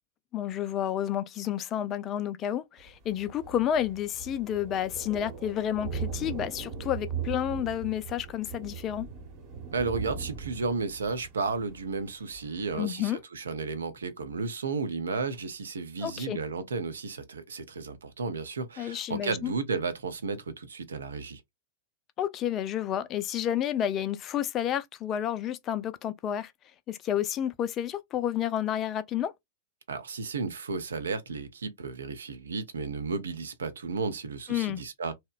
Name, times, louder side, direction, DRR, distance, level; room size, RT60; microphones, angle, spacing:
voice 1, 0.3-9.1 12.8-13.2 16.0-16.4 18.8-19.5 22.2-26.5 26.9-29.3 34.5-34.8, left 10 dB, 30° left, 0.3 m, -30 dB
Thunder, 2.8-12.8, right 6 dB, 40° right, 1.0 m, -39 dB
voice 2, 9.7-21.4 29.9-35.1, right 4 dB, 75° right, 0.6 m, -33 dB
2.8 x 2.1 x 2.4 m
figure-of-eight pair, 100°, 0 cm